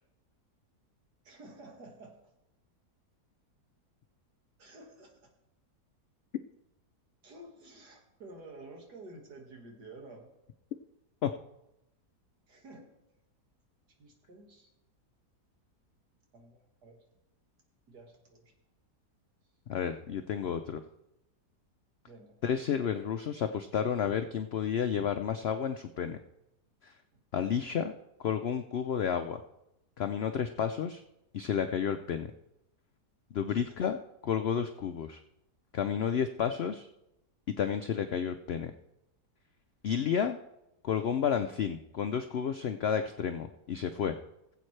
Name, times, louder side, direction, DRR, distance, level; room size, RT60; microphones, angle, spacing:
voice 1, 1.2-2.2 4.6-5.3 7.2-10.3 12.5-12.9 14.0-14.7 16.3-17.0 17.9-18.5 22.1-22.4 22.8-22.9 33.5-33.7, right 2 dB, 80° right, 1 dB, 2.4 m, -51 dB
voice 2, 19.7-20.8 22.4-26.2 26.8-26.9 27.3-27.9 28.2-29.4 30.0-31.0 31.3-32.3 33.3-35.2 35.7-36.9 37.6-38.7 39.8-40.4 40.8-44.1, left 8 dB, 90° left, 8 dB, 0.5 m, -31 dB
19.5 x 8.1 x 3.2 m, 0.89 s
omnidirectional pair, 1.7 m